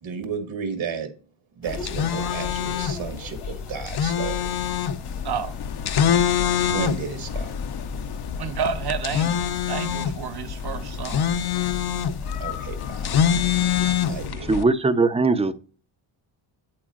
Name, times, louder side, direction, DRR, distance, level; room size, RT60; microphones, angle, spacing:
voice 1, 0.0-1.1 1.6-4.5 6.6-7.5 12.4-13.1 14.1-14.5, right 6 dB, 70° right, 2.0 m, -33 dB
sound 1, 1.6-14.3, left 5 dB, 80° left, 2.1 m, -41 dB
sound 2, 1.7-14.6, left 8 dB, 50° left, 0.7 m, -25 dB
voice 2, 8.4-11.3, right 7 dB, 50° right, 1.1 m, -30 dB
voice 3, 14.5-15.5, right 3 dB, 15° right, 0.5 m, -20 dB
8.6 x 8.3 x 2.5 m
cardioid pair, 100°, 49 cm